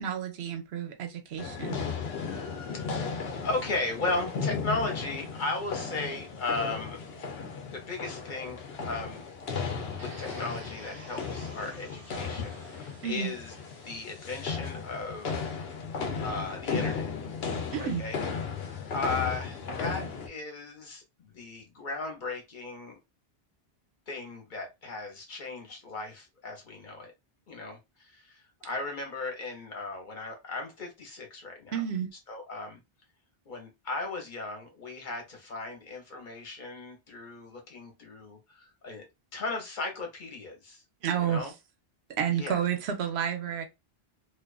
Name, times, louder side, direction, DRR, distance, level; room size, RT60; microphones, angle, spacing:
voice 1, 0.0-1.8 13.0-13.3 17.7-18.0 31.7-32.1 41.0-41.5 42.1-43.6, right 8 dB, 85° right, 0.9 m, -30 dB
sound 1, 1.4-20.3, left 5 dB, 75° left, 0.8 m, -35 dB
voice 2, 3.4-7.0 7.7-9.3 10.0-13.5 13.8-15.4 16.2-17.1 17.8-18.2 18.6-23.0 24.1-27.1 27.5-31.7 32.3-32.8 33.4-39.1 39.3-40.8 41.2-41.5 42.3-42.6, left 3 dB, 50° left, 1.0 m, -36 dB
sound 2, 10.0-15.0, right 2 dB, 35° right, 0.8 m, -52 dB
2.5 x 2.3 x 2.3 m
omnidirectional pair, 1.1 m